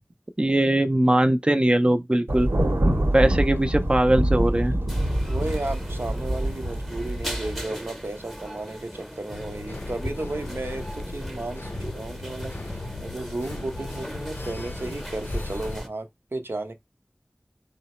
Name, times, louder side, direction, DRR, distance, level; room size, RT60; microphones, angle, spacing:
voice 1, 0.4-2.5 3.1-4.7, right 1 dB, 25° right, 0.4 m, -20 dB
Thunder, 2.3-7.6, right 1 dB, 90° right, 0.9 m, -25 dB
sound 1, 4.9-15.9, equal, 5° left, 0.8 m, -38 dB
voice 2, 5.3-16.7, right 2 dB, 70° right, 0.7 m, -34 dB
sound 2, 9.3-15.8, left 2 dB, 65° left, 0.5 m, -37 dB
3.8 x 2.0 x 4.1 m
wide cardioid pair, 50°, 4 cm